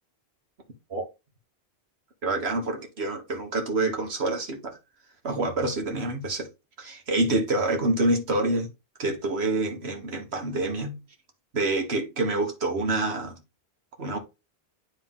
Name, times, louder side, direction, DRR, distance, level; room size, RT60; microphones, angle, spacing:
voice 1, 2.2-4.8 5.2-6.5 6.8-8.7 9.0-11.0 11.5-13.4 14.0-14.2, right 2 dB, 80° right, 1.7 m, -27 dB
9.3 x 3.5 x 3.7 m
omnidirectional pair, 1.1 m